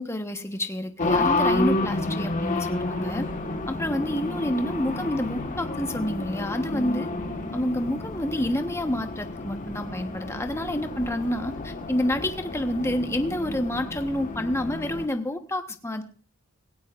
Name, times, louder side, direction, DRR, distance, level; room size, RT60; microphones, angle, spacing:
voice 1, 0.0-3.3 3.7-7.1 7.5-16.0, left 1 dB, 15° left, 6 dB, 1.1 m, -28 dB
Race car auto racing, 1.0-15.1, left 2 dB, 40° left, 1.5 m, -30 dB
17.5 x 17.0 x 2.5 m, 0.37 s
head